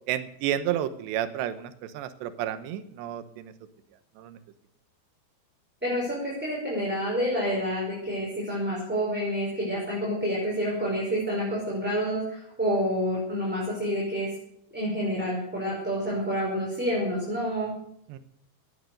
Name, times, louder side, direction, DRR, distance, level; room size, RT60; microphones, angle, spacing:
voice 1, 0.1-3.5 4.2-4.4 18.1-18.2, right 11 dB, 90° right, 10 dB, 3.2 m, -31 dB
voice 2, 5.8-14.3 14.7-17.7, equal, ahead, -5 dB, 5.1 m, -28 dB
18.5 x 10.5 x 6.5 m, 0.73 s
omnidirectional pair, 4.8 m